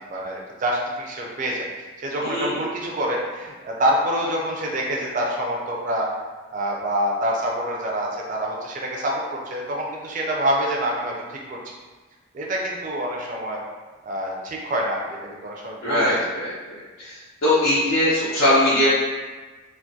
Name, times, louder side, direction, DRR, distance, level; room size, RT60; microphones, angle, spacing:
voice 1, 0.1-1.6 2.0-6.1 6.5-11.6 12.3-13.6 14.0-16.2, right 1 dB, 40° right, -2 dB, 0.3 m, -26 dB
voice 2, 2.2-2.6 15.8-17.2 17.4-18.9, left 1 dB, 70° left, -11 dB, 0.6 m, -21 dB
2.2 x 2.1 x 2.6 m, 1.3 s
head